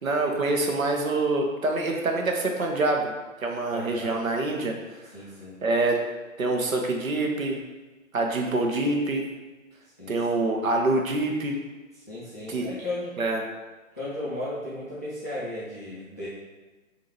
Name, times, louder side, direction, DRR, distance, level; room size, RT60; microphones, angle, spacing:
voice 1, 0.0-3.1 3.4-4.7 5.6-6.0 6.4-7.6 8.1-9.2 10.1-11.6 12.5-12.7 13.2-13.4, right 2 dB, 75° right, 1 dB, 1.0 m, -25 dB
voice 2, 3.7-4.2 5.1-5.6 10.0-10.2 12.1-13.1 14.0-16.3, left 1 dB, 15° left, -10 dB, 0.3 m, -35 dB
5.3 x 2.7 x 3.1 m, 1.2 s
figure-of-eight pair, 130°, 41 cm